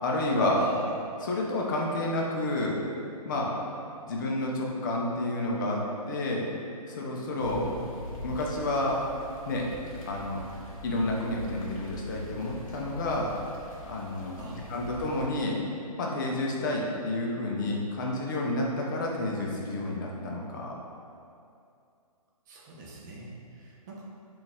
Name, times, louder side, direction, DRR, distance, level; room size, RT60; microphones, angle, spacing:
voice 1, 0.0-0.6 1.2-2.8 3.2-3.6 4.0-6.4 6.9-7.7 8.2-9.0 9.5-9.7 10.1-10.4 10.8-13.3 13.9-15.6 16.0-20.7, left 1 dB, 30° left, -2 dB, 0.5 m, -30 dB
voice 2, 0.6-0.9 7.4-7.9 14.4-14.9 22.5-24.0, right 2 dB, 30° right, -4 dB, 0.6 m, -43 dB
sound 1, 7.4-15.3, left 1 dB, 60° left, 0.9 m, -43 dB
3.8 x 2.4 x 3.5 m, 2.5 s
figure-of-eight pair, 130°, 20 cm